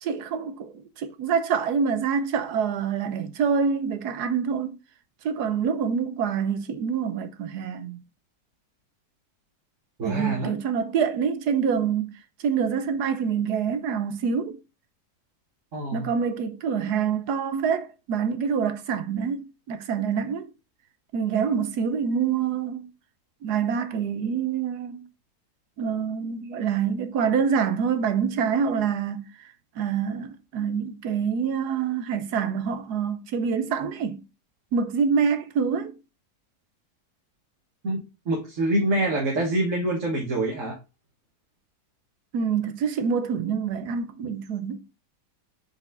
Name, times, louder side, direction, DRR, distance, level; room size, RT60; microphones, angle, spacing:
voice 1, 0.0-4.8 5.2-8.0 10.0-12.1 12.4-14.6 15.9-20.5 21.1-22.9 23.4-25.1 25.8-29.3 29.8-34.2 34.7-35.9 42.3-44.8, right 6 dB, 90° right, 1.4 m, -26 dB
voice 2, 10.0-10.5 15.7-16.1 37.8-40.8, right 1 dB, 55° right, 1.8 m, -26 dB
5.0 x 5.0 x 3.8 m
omnidirectional pair, 1.7 m